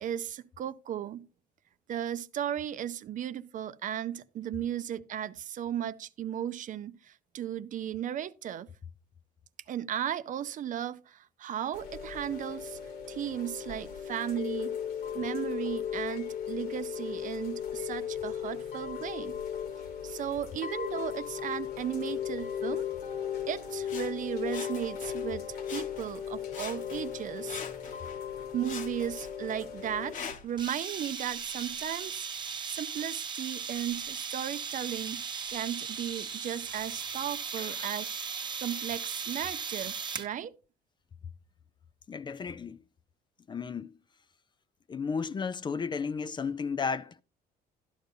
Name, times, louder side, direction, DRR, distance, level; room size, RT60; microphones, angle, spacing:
voice 1, 0.0-1.3 1.9-8.7 9.7-12.8 13.1-14.8 15.1-19.4 20.0-22.9 23.5-27.6 28.5-30.2 30.4-32.3 32.7-35.2 35.5-38.2 38.6-40.5, right 10 dB, 50° right, 0.6 m, -35 dB
Chime / Rain, 11.7-30.1, left 8 dB, 70° left, 1.7 m, -37 dB
Sawing, 23.8-25.3 25.6-26.2 26.5-28.2 28.6-30.6 31.3-31.4, left 6 dB, 50° left, 1.1 m, -44 dB
sound 1, 30.6-40.3, right 6 dB, 25° right, 1.0 m, -37 dB
voice 2, 37.6-37.9 42.1-42.8 43.5-43.9 44.9-47.2, left 5 dB, 25° left, 0.4 m, -34 dB
13.0 x 10.5 x 2.7 m
cardioid pair, 110°, 17 cm